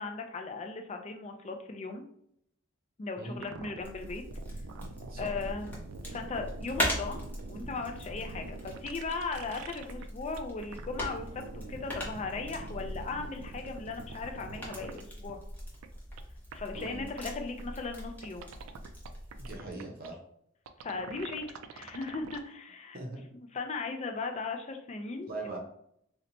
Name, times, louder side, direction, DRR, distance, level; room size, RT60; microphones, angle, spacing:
voice 1, 0.0-2.0 3.0-4.2 5.2-5.7 6.1-7.2 7.5-11.2 11.5-15.4 16.5-18.5 20.8-21.5 21.7-23.0 23.3-25.5, left 4 dB, 30° left, 5 dB, 0.4 m, -37 dB
sound 1, 3.4-10.0 10.4-15.0 15.3-15.4 15.8-15.9 16.2-16.3 16.5-16.6 16.8-16.9 17.2-17.3 17.6-17.7 18.2-20.1 20.7-22.4, right 4 dB, 85° right, 0.3 m, -45 dB
sound 2, 3.8-19.6, equal, 10° left, 0.7 m, -40 dB
voice 2, 19.4-20.2 22.9-23.2 25.3-25.6, right 2 dB, 45° right, 1 dB, 0.6 m, -40 dB
2.8 x 2.1 x 3.9 m, 0.72 s
head